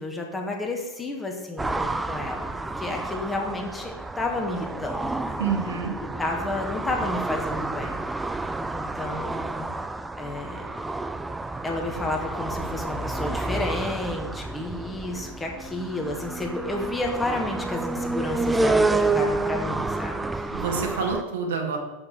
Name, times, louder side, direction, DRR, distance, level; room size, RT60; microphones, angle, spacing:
voice 1, 0.0-5.4 6.0-8.0 8.7-9.7 10.2-10.8 11.6-20.6, left 2 dB, 10° left, 1 dB, 1.5 m, -31 dB
sound 1, 1.6-21.2, right 2 dB, 10° right, 0.4 m, -29 dB
voice 2, 5.4-5.9 20.5-21.8, right 5 dB, 60° right, 1 dB, 1.8 m, -27 dB
7.5 x 6.3 x 6.2 m, 1.1 s
figure-of-eight pair, 90°, 0 cm